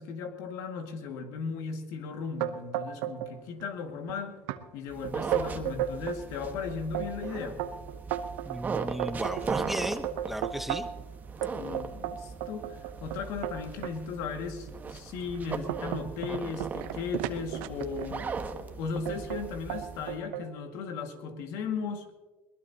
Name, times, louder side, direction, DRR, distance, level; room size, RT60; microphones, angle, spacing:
voice 1, 0.0-4.4 4.7-7.7 11.5-22.1, left 5 dB, 70° left, 5 dB, 2.0 m, -36 dB
sound 1, 2.4-3.3 3.6-4.1 4.5-4.6 5.0-6.2 6.7-11.0 11.4-14.0 14.6-14.7 15.2-18.3 19.1-19.4 19.7-20.5, right 11 dB, 80° right, 0.9 m, -34 dB
sound 2, 4.9-20.2, right 5 dB, 30° right, 1.4 m, -38 dB
voice 2, 8.4-10.9, right 1 dB, 5° right, 7 dB, 1.0 m, -35 dB
21.5 x 19.5 x 2.9 m, 1.2 s
supercardioid pair, 95°, 6 cm